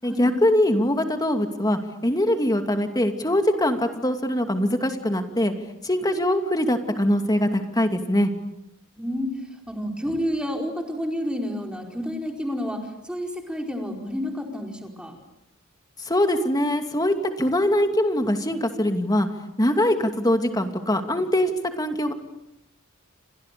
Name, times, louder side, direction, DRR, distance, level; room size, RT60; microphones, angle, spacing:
voice 1, 0.0-5.5 5.8-8.3 16.0-19.3 19.6-22.1, left 1 dB, 20° left, 6 dB, 2.6 m, -22 dB
voice 2, 9.0-9.3 9.7-15.2, equal, 5° right, 2 dB, 4.8 m, -30 dB
30.0 x 26.0 x 6.9 m, 0.83 s
head